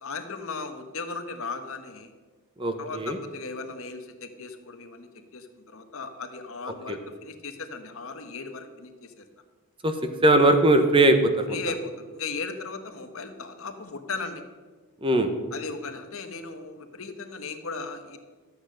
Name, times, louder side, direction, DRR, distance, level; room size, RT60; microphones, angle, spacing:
voice 1, 0.0-2.1 2.8-9.3 11.5-14.4 15.5-18.2, left 4 dB, 65° left, 7 dB, 1.2 m, -37 dB
voice 2, 2.6-3.2 6.9-7.0 9.8-9.9 10.2-11.6 15.0-15.3, right 2 dB, 25° right, 6 dB, 1.0 m, -20 dB
12.5 x 8.3 x 6.5 m, 1.4 s
head